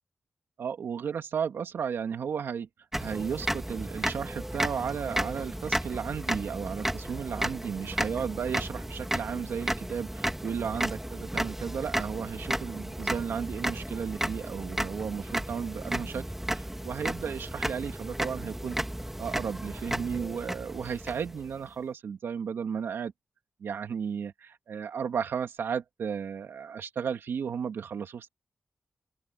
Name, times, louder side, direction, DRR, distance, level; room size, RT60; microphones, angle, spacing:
voice 1, 0.6-2.7 3.0-16.2 16.5-18.8 19.2-23.1 23.6-28.3, right 7 dB, 80° right, 2.7 m, -34 dB
sound 1, 2.9-21.7, right 1 dB, 10° right, 2.5 m, -33 dB
open air
cardioid pair, 85°, 4 cm